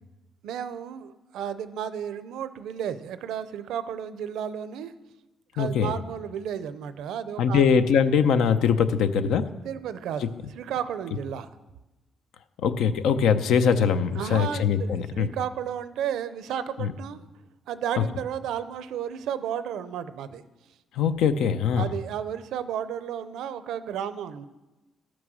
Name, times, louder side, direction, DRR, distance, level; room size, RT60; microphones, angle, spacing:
voice 1, 0.4-4.9 5.5-7.7 9.6-11.5 14.2-17.2 17.7-20.5 21.8-24.4, right 9 dB, 85° right, 13 dB, 0.6 m, -33 dB
voice 2, 5.6-5.9 7.4-9.5 10.2-10.3 12.6-15.3 16.8-16.9 21.0-21.9, left 7 dB, 85° left, 10 dB, 0.6 m, -22 dB
13.0 x 6.1 x 6.3 m, 1.1 s
cardioid pair, 90°, 0 cm